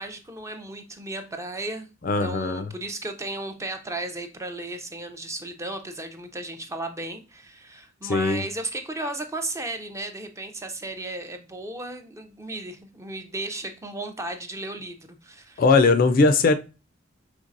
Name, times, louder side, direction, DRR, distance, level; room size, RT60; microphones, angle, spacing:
voice 1, 0.0-1.9 2.2-15.6, right 2 dB, 15° right, 0.5 m, -35 dB
voice 2, 2.0-2.7 8.0-8.4 15.6-16.5, left 3 dB, 45° left, 0.4 m, -19 dB
5.2 x 3.2 x 2.6 m
head